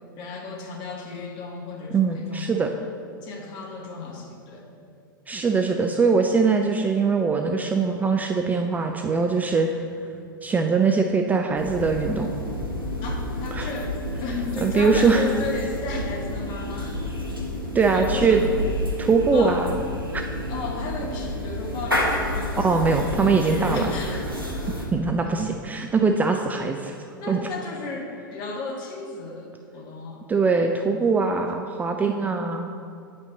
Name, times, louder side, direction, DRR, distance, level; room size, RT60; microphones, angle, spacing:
voice 1, 0.2-2.5 3.2-4.6 13.0-17.0 17.9-18.5 19.3-19.6 20.5-22.6 22.9-24.4 25.2-25.3 27.2-30.2 32.0-32.4, left 3 dB, 40° left, 1 dB, 1.3 m, -34 dB
voice 2, 1.9-2.7 5.3-9.7 10.4-12.3 13.5-13.7 14.6-15.2 17.7-18.4 19.0-19.7 20.1-20.2 22.6-23.9 24.9-26.9 27.3-27.4 30.3-32.7, right 4 dB, 15° right, 4 dB, 0.4 m, -22 dB
sound 1, 11.6-24.9, left 1 dB, 90° right, 1.2 m, -30 dB
8.6 x 5.4 x 4.0 m, 2.3 s
figure-of-eight pair, 90°, 11 cm